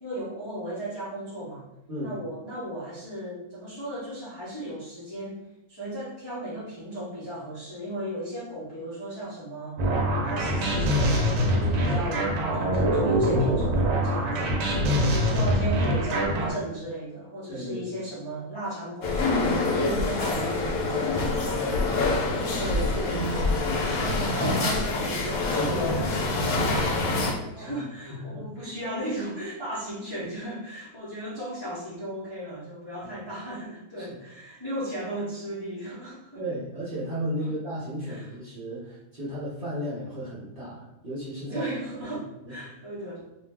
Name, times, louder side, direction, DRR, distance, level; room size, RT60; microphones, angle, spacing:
voice 1, 0.0-1.7 2.0-5.4 5.7-10.0 10.2-14.5 15.0-21.5 22.4-23.3 23.7-36.4 37.4-37.5 38.1-38.3 41.5-43.2, right 1 dB, 25° left, -10 dB, 0.6 m, -35 dB
sound 1, 9.8-16.5, equal, 80° right, 1.1 m, -24 dB
voice 2, 14.7-15.0 17.5-18.0 21.7-22.6 27.5-27.8 28.1-28.5 33.0-33.2 34.0-34.2 36.4-41.6 42.4-42.6, equal, 45° right, -8 dB, 0.8 m, -35 dB
sound 2, 19.0-27.3, left 2 dB, 75° left, 1.0 m, -26 dB
2.6 x 2.3 x 3.2 m, 0.93 s
omnidirectional pair, 1.6 m